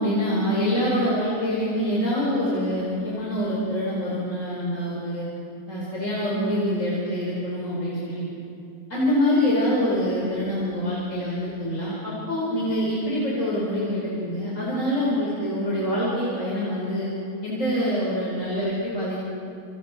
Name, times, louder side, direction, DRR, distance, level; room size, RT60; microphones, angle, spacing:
voice 1, 0.0-5.2 5.7-8.2 8.9-17.1 17.4-19.3, equal, 50° left, -7 dB, 5.6 m, -25 dB
30.0 x 29.0 x 4.6 m, 2.7 s
omnidirectional pair, 1.8 m